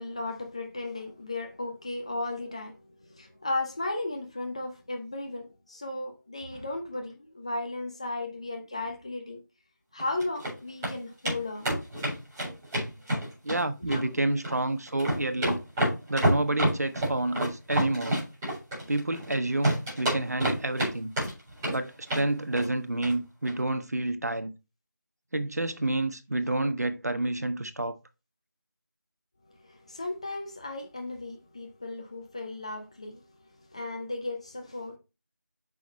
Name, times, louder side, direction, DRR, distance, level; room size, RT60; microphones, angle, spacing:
voice 1, 0.0-9.4 9.9-11.8 13.9-14.0 29.5-33.2 33.6-35.0, left 2 dB, 20° left, 0.8 m, -35 dB
sound 1, 10.0-10.5 10.8-10.9 11.3-11.4 11.6-13.6 13.9-14.6 14.9-19.3 19.6-20.9 21.2-21.8 22.1-22.3 22.6-22.7 23.0-23.1 23.4-23.5, right 1 dB, 10° right, 4.3 m, -28 dB
voice 2, 13.4-15.6 16.1-18.2 18.9-21.1 21.7-24.5 25.3-27.9, right 2 dB, 50° right, 1.2 m, -29 dB
8.8 x 6.3 x 3.2 m
figure-of-eight pair, 175°, 11 cm